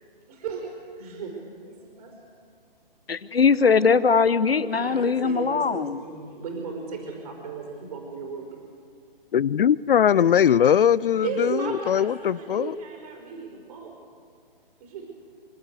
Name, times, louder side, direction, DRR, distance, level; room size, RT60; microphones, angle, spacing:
voice 1, 0.3-1.4 1.6-2.1 4.7-8.5 11.2-13.9 14.8-15.1, right 5 dB, 40° right, 5.1 m, -35 dB
voice 2, 3.1-6.0, left 5 dB, 80° left, 1.0 m, -21 dB
voice 3, 9.3-12.7, left 9 dB, 65° left, 0.5 m, -20 dB
27.5 x 12.0 x 8.2 m
figure-of-eight pair, 135°, 29 cm